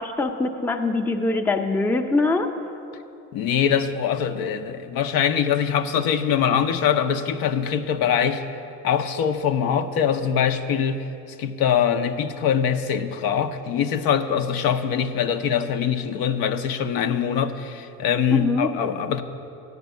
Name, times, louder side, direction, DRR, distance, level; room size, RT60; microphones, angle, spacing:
voice 1, 0.0-2.5 18.3-18.7, left 3 dB, 5° left, 5 dB, 0.5 m, -23 dB
voice 2, 3.3-8.4 8.8-11.1 11.4-19.2, left 8 dB, 75° left, 7 dB, 0.6 m, -23 dB
9.4 x 5.2 x 8.1 m, 2.7 s
supercardioid pair, 95°, 36 cm